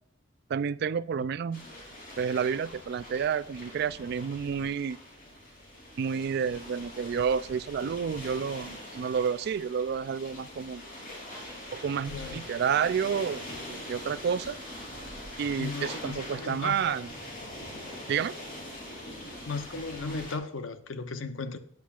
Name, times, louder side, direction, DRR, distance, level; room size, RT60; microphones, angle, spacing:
voice 1, 0.5-1.7 2.2-5.0 6.0-10.8 11.7-14.6 15.4-17.1 18.1-18.3, right 7 dB, 55° right, 0.3 m, -30 dB
sound 1, 1.5-20.4, left 1 dB, 45° left, 3.1 m, -43 dB
voice 2, 12.1-12.4 15.6-17.0 19.5-21.6, left 3 dB, 75° left, 0.8 m, -36 dB
12.5 x 9.1 x 2.4 m
head